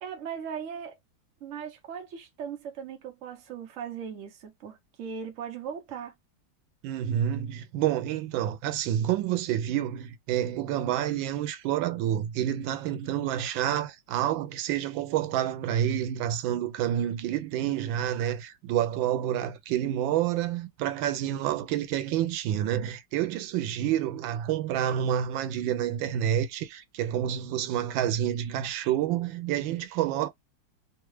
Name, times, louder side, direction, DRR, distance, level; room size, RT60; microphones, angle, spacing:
voice 1, 0.0-1.0 1.4-6.1, right 7 dB, 50° right, 1.0 m, -38 dB
voice 2, 6.8-30.3, right 11 dB, 90° right, 1.3 m, -28 dB
3.2 x 2.3 x 3.1 m
omnidirectional pair, 2.0 m